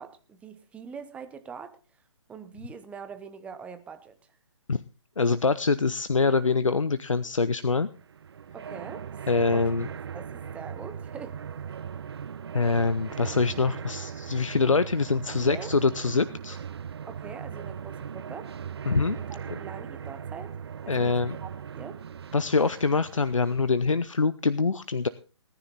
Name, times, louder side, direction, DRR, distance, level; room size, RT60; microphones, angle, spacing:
voice 1, 0.0-1.8 2.3-4.4 8.5-9.1 9.5-9.7 10.1-11.4 15.0-15.7 17.1-18.5 19.1-20.6 20.8-21.5 21.7-22.0, right 6 dB, 10° right, 10 dB, 0.9 m, -43 dB
voice 2, 5.2-7.9 9.3-9.9 12.5-16.6 18.9-19.2 20.9-21.4 22.3-25.1, left 4 dB, 80° left, 16 dB, 0.7 m, -24 dB
sound 1, 8.0-23.7, right 7 dB, 55° right, 0.5 m, -39 dB
18.0 x 10.0 x 4.1 m, 0.34 s
figure-of-eight pair, 135°, 16 cm